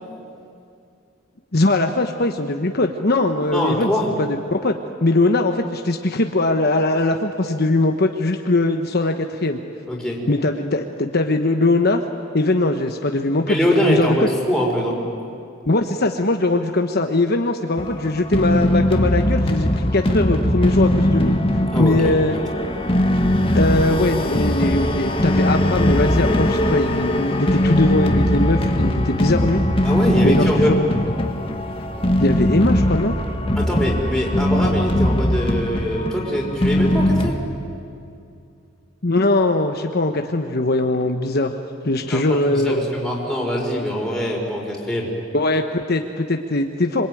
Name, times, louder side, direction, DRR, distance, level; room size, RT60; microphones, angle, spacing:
voice 1, 1.5-3.9 4.2-4.7 5.0-9.6 10.3-12.0 12.3-14.3 15.7-22.4 23.5-29.6 30.2-30.7 32.2-33.1 39.0-41.6 41.8-42.9 45.3-47.1, left 2 dB, 50° left, 4 dB, 1.1 m, -20 dB
voice 2, 3.5-4.1 9.9-10.2 13.5-15.0 21.7-22.2 29.8-30.7 33.6-37.4 42.0-45.1, equal, ahead, -3 dB, 5.1 m, -23 dB
sound 1, 17.8-37.3, left 1 dB, 25° left, 1.5 m, -20 dB
26.0 x 24.0 x 9.3 m, 2.5 s
head